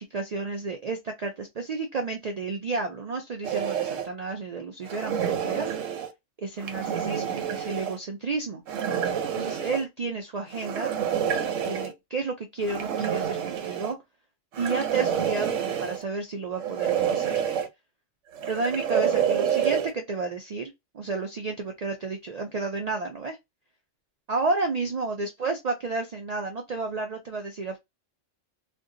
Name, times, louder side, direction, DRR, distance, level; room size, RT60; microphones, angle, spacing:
voice 1, 0.0-5.7 6.4-8.6 9.3-10.9 11.6-14.0 14.6-17.4 18.5-23.4 24.3-27.8, right 3 dB, 70° right, 0.3 m, -31 dB
sound 1, 3.4-4.1 4.8-6.1 6.6-7.9 8.7-9.8 10.5-11.9 12.6-13.9 14.5-16.0 16.6-17.7 18.3-19.9, right 8 dB, 85° right, 1.0 m, -28 dB
2.5 x 2.3 x 3.7 m
omnidirectional pair, 1.3 m